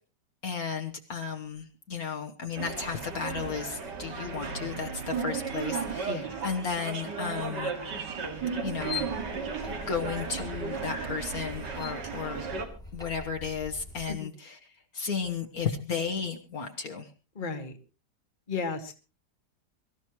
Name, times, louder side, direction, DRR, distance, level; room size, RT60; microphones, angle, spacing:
voice 1, 0.4-7.7 8.6-9.1 9.7-12.5 12.9-17.1, left 6 dB, 60° left, 3 dB, 1.8 m, -34 dB
sound 1, 2.6-12.7, right 5 dB, 85° right, 2.6 m, -35 dB
voice 2, 6.0-6.4 14.1-14.3 17.3-17.8 18.5-18.9, left 4 dB, 30° left, 5 dB, 1.8 m, -34 dB
sound 2, 8.6-14.2, left 4 dB, ahead, 2.0 m, -42 dB
23.5 x 14.0 x 3.1 m, 0.32 s
omnidirectional pair, 1.8 m